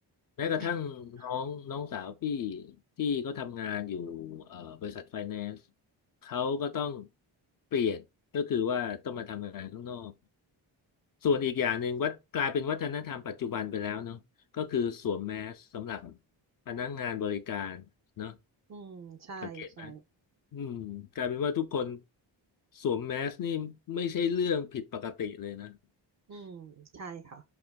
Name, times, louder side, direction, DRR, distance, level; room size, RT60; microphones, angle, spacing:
voice 1, 0.4-5.6 6.2-7.1 7.7-8.0 8.3-10.1 11.2-14.2 14.5-16.2 16.7-17.9 18.2-18.4 19.5-19.9 20.5-22.0 22.7-25.8, left 7 dB, 45° left, 0.4 m, -33 dB
voice 2, 18.7-20.0 26.3-27.4, right 5 dB, 40° right, 0.4 m, -44 dB
5.0 x 2.4 x 2.2 m
cardioid pair, 65°, 47 cm